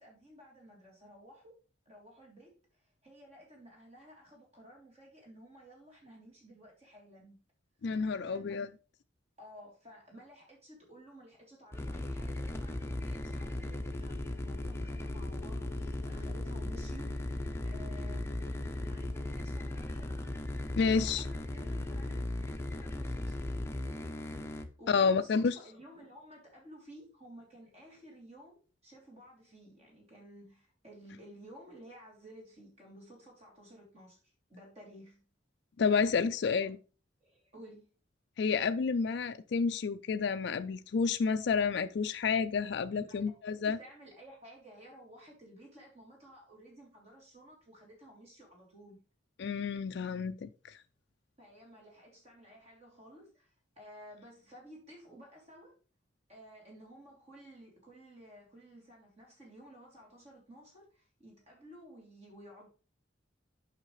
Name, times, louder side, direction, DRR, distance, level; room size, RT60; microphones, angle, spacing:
voice 1, 0.0-1.6 1.8-7.4 8.2-8.7 9.4-17.3 17.6-20.2 20.5-22.3 22.6-23.5 24.6-35.2 36.5-36.7 37.2-37.9 42.9-49.0 51.4-55.8 56.3-62.7, right 1 dB, 35° right, 3.0 m, -54 dB
voice 2, 7.8-8.7 20.8-21.2 24.9-25.5 35.8-36.8 38.4-43.8 49.4-50.8, left 5 dB, 60° left, 0.4 m, -30 dB
sound 1, 11.7-24.6, left 1 dB, 15° left, 0.7 m, -37 dB
9.1 x 5.7 x 3.1 m
head